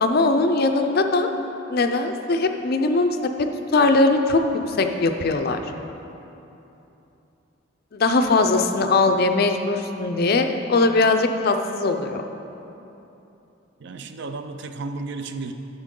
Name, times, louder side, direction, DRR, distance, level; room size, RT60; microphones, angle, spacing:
voice 1, 0.0-1.3 1.7-5.6 7.9-12.2, left 3 dB, 50° left, 6 dB, 0.5 m, -20 dB
voice 2, 13.8-15.5, right 3 dB, 60° right, 8 dB, 0.4 m, -33 dB
10.0 x 6.6 x 3.7 m, 2.9 s
head